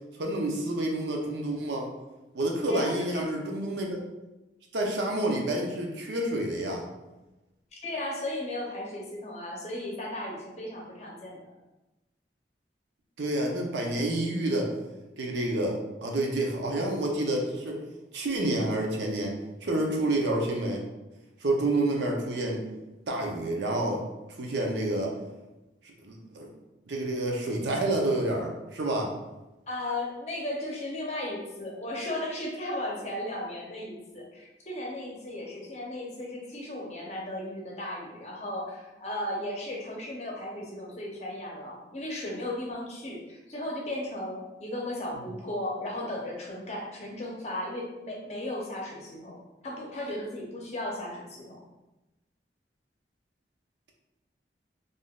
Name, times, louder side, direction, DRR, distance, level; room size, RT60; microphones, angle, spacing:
voice 1, 0.2-1.9 2.3-4.0 4.7-6.9 13.2-14.7 15.2-17.8 18.1-19.4 19.6-20.8 21.4-22.6 23.1-24.0 24.4-25.1 26.0-26.5 26.9-29.1, right 1 dB, 80° right, 1 dB, 0.6 m, -28 dB
voice 2, 2.7-3.2 7.8-11.4 29.7-49.4 49.6-51.6, left 1 dB, 40° left, -2 dB, 0.6 m, -35 dB
3.5 x 2.5 x 2.3 m, 1.0 s
head